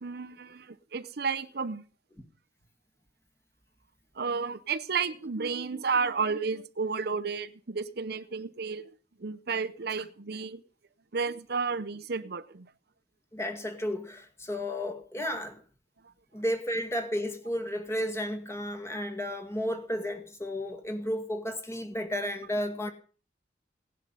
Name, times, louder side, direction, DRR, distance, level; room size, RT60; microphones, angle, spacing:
voice 1, 0.0-1.8 4.1-8.9 9.2-10.6 11.1-12.7, right 5 dB, 55° right, 0.7 m, -32 dB
voice 2, 13.3-15.6 16.3-22.9, equal, 15° left, 1.9 m, -33 dB
18.0 x 11.0 x 5.6 m
head